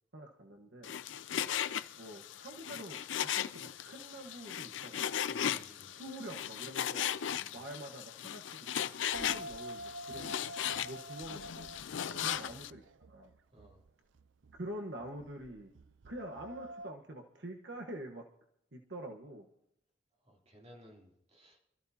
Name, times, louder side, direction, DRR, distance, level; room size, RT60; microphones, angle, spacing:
voice 1, 0.1-0.9 2.0-5.0 5.9-7.1 7.5-10.3 10.6-11.7 12.2-13.3 14.6-15.7 16.0-18.2 18.7-19.5, right 1 dB, 65° right, 3 dB, 1.3 m, -46 dB
Frying (food), 0.8-12.7, left 9 dB, 80° left, 0.5 m, -37 dB
voice 2, 5.3-6.0 7.3-7.6 12.0-12.5 13.5-13.8 20.2-21.6, equal, 35° right, -1 dB, 3.0 m, -57 dB
sound 1, 9.1-16.9, right 1 dB, 90° right, 0.6 m, -48 dB
26.5 x 14.0 x 2.8 m, 0.74 s
head